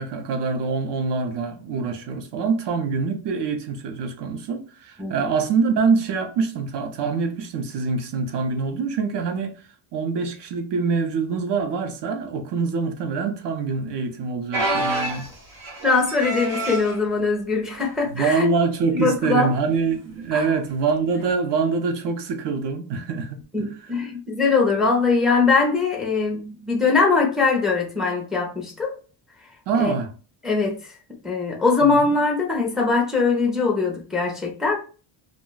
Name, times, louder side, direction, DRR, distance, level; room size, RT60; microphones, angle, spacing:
voice 1, 0.0-9.7 9.9-15.3 18.1-23.7 29.7-30.1 31.9-32.1, right 5 dB, 60° right, 0.6 m, -25 dB
sound 1, 14.5-17.0 17.7-18.0 18.3-18.4 19.3-19.6 21.2-21.3, right 1 dB, 85° right, 1.4 m, -28 dB
voice 2, 15.8-18.5 18.9-19.5 20.3-20.5 23.5-28.9 29.8-29.9 30.4-30.9 31.2-34.8, left 4 dB, ahead, 0.4 m, -21 dB
2.5 x 2.1 x 3.7 m
cardioid pair, 165°, 48 cm